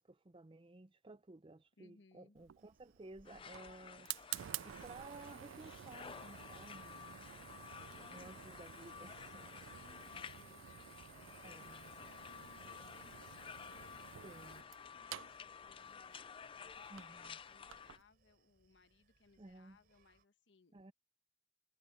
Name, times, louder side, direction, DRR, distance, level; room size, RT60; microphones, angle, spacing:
voice 1, 0.0-4.1 4.6-7.1 8.1-9.6 11.4-11.9 14.2-14.6 16.9-17.4 19.4-19.8 20.7-20.9, right 2 dB, 25° right, 0.5 m, -55 dB
voice 2, 1.8-2.4 7.8-9.3 9.6-20.7, left 3 dB, 65° left, 1.1 m, -68 dB
Fire, 2.4-18.0, right 12 dB, 80° right, 0.4 m, -52 dB
Screaming, 2.6-20.2, right 2 dB, 50° right, 3.8 m, -75 dB
sound 1, 3.2-18.0, left 7 dB, 25° left, 0.4 m, -53 dB
head